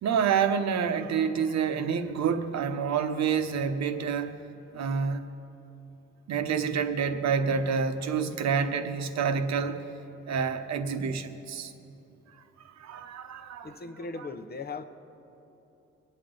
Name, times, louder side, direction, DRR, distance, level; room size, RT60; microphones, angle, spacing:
voice 1, 0.0-4.3 4.7-5.2 6.3-9.8 10.3-11.7 12.8-13.7, right 6 dB, 60° right, 7 dB, 1.0 m, -28 dB
voice 2, 13.6-14.8, left 4 dB, 30° left, 8 dB, 0.8 m, -38 dB
22.5 x 8.9 x 3.9 m, 3.0 s
cardioid pair, 90°, 30 cm